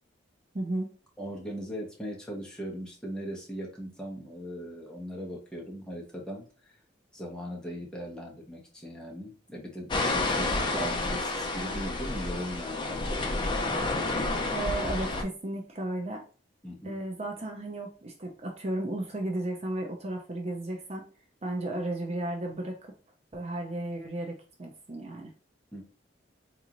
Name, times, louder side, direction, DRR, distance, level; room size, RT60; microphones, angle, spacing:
voice 1, 0.5-0.9 14.5-16.2 16.8-21.0 21.4-22.9 23.3-25.3, right 1 dB, 35° right, 1 dB, 0.5 m, -34 dB
voice 2, 1.2-6.8 7.1-13.4 16.6-17.0 25.7-25.8, equal, 5° left, -3 dB, 0.9 m, -39 dB
sound 1, 9.9-15.2, left 2 dB, 25° left, 0.5 m, -30 dB
4.0 x 3.0 x 2.5 m, 0.38 s
head